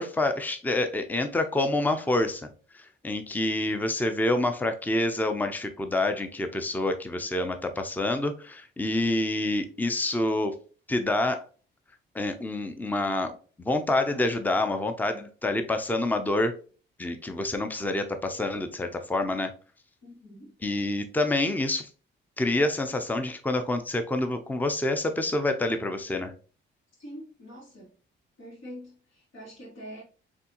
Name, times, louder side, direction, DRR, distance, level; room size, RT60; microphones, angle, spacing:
voice 1, 0.0-10.6 10.9-11.4 12.1-16.6 17.0-19.5 20.6-21.9 22.4-26.3, left 2 dB, 10° left, 0.6 m, -27 dB
voice 2, 20.0-20.5 27.0-27.9 28.4-30.0, equal, 70° left, 2.3 m, -44 dB
4.3 x 3.5 x 2.9 m
cardioid pair, 90°, 20 cm